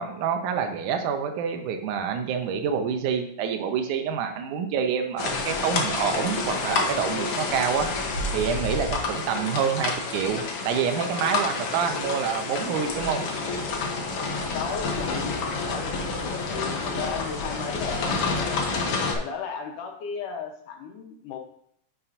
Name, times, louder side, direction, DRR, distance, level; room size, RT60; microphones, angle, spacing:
voice 1, 0.0-7.9 8.3-13.3, right 7 dB, 80° right, 5 dB, 2.1 m, -27 dB
sound 1, 5.2-19.2, left 3 dB, 65° left, 1.5 m, -29 dB
voice 2, 14.5-18.6 19.1-21.4, left 6 dB, 80° left, 2 dB, 2.6 m, -35 dB
9.7 x 5.7 x 2.6 m, 0.68 s
omnidirectional pair, 3.7 m